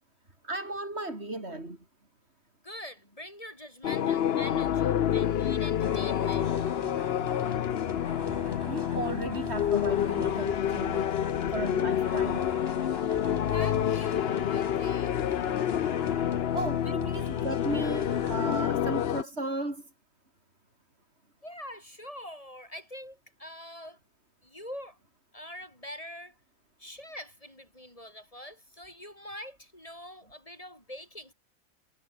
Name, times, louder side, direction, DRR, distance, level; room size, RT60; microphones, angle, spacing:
voice 1, 0.4-1.8 8.7-11.1 11.5-12.5 16.5-19.8, right 2 dB, 55° right, 5.2 m, -35 dB
voice 2, 2.6-6.5 13.5-15.2 21.4-24.0 24.4-25.0 25.3-26.3 26.8-31.3, left 1 dB, 25° left, 4.8 m, -44 dB
sound 1, 3.8-19.2, left 10 dB, 55° left, 0.9 m, -28 dB
sound 2, 5.8-18.7, right 1 dB, 20° right, 4.8 m, -44 dB
omnidirectional pair, 1.3 m